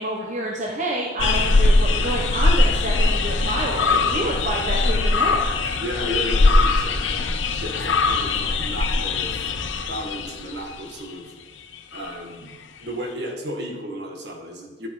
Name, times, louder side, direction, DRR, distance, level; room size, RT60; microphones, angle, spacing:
voice 1, 0.0-5.4, right 1 dB, 40° right, -2 dB, 1.1 m, -28 dB
sound 1, 1.2-10.5 12.0-12.1, left 3 dB, 85° left, 0.8 m, -21 dB
voice 2, 3.9-4.3 5.8-7.2 7.6-9.3 9.7-11.3 11.9-14.9, equal, 60° right, 1 dB, 1.9 m, -33 dB
11.0 x 8.3 x 4.9 m, 1.3 s
head